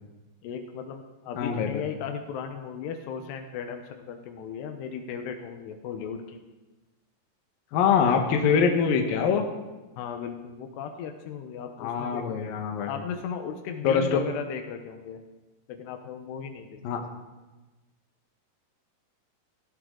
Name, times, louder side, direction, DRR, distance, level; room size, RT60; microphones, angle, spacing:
voice 1, 0.4-6.4 10.0-12.4 12.9-15.2 15.7-17.0, left 7 dB, 80° left, 5 dB, 3.1 m, -36 dB
voice 2, 1.4-1.8 7.7-9.4 11.8-12.9 13.8-14.2 16.8-17.0, left 6 dB, 65° left, 3 dB, 2.9 m, -24 dB
17.0 x 16.0 x 3.9 m, 1.2 s
omnidirectional pair, 4.8 m